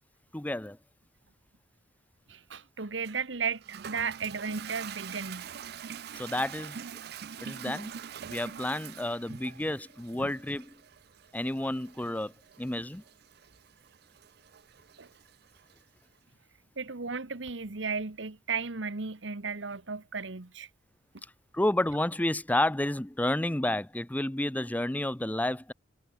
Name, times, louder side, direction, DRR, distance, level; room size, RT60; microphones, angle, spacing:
voice 1, 0.3-0.8 6.2-6.8 7.4-7.9 8.3-10.8 11.3-12.3 12.6-13.0 21.5-25.7, left 1 dB, 10° left, 0.6 m, -30 dB
voice 2, 2.3-5.5 9.3-9.4 10.2-10.3 15.0-15.1 16.8-20.7, right 5 dB, 85° right, 1.4 m, -35 dB
Toilet flush, 3.0-15.8, right 7 dB, 60° right, 0.5 m, -45 dB
head